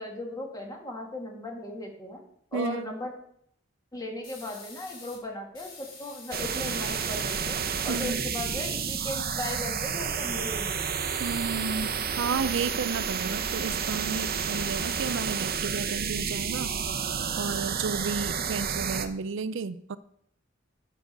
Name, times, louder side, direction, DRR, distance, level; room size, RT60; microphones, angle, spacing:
voice 1, 0.0-2.2 2.5-3.1 3.9-10.8, left 2 dB, 20° left, 1 dB, 2.3 m, -37 dB
voice 2, 2.5-2.9 7.9-8.2 11.2-11.9 12.2-16.7 17.3-20.0, right 5 dB, 65° right, 15 dB, 0.5 m, -32 dB
sound 1, 4.2-5.2 5.5-7.4 7.7-12.2 12.5-13.5, left 3 dB, 50° left, 4.4 m, -48 dB
sound 2, 6.3-19.1, right 6 dB, 50° right, 0.8 m, -30 dB
10.5 x 6.2 x 6.6 m, 0.69 s
head